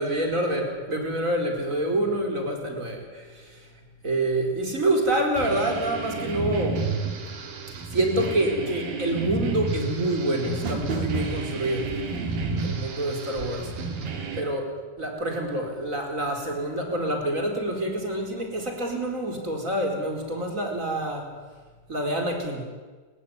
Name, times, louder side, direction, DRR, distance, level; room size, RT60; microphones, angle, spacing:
voice 1, 0.0-3.7 4.0-6.8 7.9-12.0 12.4-13.7 14.4-14.6 15.0-21.3 21.9-22.6, right 1 dB, 20° right, 2 dB, 4.8 m, -27 dB
sound 1, 5.4-14.4, right 4 dB, 75° right, 4.6 m, -31 dB
29.0 x 16.0 x 9.9 m, 1.4 s
omnidirectional pair, 4.1 m